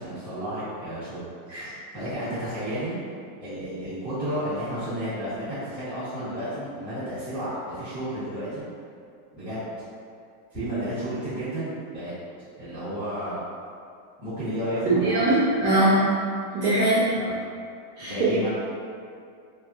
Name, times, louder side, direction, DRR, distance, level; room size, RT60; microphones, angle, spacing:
voice 1, 0.0-3.0 3.4-8.7 9.3-9.7 10.5-12.1 12.6-13.4 14.2-15.3 17.2-17.3 18.0-18.5, equal, 5° left, -15 dB, 0.6 m, -32 dB
voice 2, 14.8-16.0 16.5-17.0 18.0-18.1, right 1 dB, 70° right, -10 dB, 1.0 m, -21 dB
3.5 x 2.2 x 2.5 m, 2.3 s
omnidirectional pair, 2.2 m